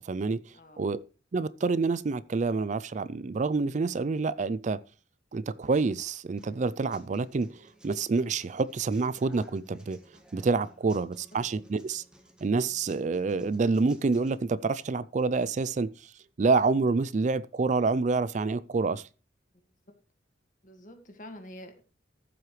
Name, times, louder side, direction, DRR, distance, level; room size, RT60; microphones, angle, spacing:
voice 1, 0.0-1.0 1.3-4.8 5.3-10.0 10.3-12.0 12.4-16.1 16.4-19.1, right 4 dB, 40° right, 0.4 m, -27 dB
Human voice / Acoustic guitar, 6.4-14.4, right 1 dB, 5° right, 1.6 m, -58 dB
voice 2, 20.6-21.8, left 1 dB, 45° left, 1.9 m, -47 dB
14.5 x 7.7 x 3.2 m
head